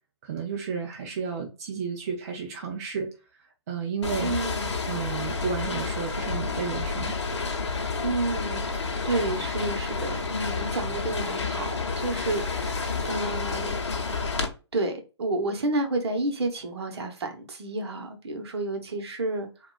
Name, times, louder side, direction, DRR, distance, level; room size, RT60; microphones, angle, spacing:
voice 1, 0.2-3.1 3.7-4.3 4.9-7.5, right 6 dB, 35° right, 0.5 m, -32 dB
sound 1, 4.0-14.5, left 4 dB, 85° left, 0.8 m, -30 dB
voice 2, 4.2-4.7 8.0-14.0 14.7-19.7, right 2 dB, 65° right, 1.0 m, -30 dB
3.6 x 2.4 x 2.3 m
hypercardioid pair, 145°, 15 cm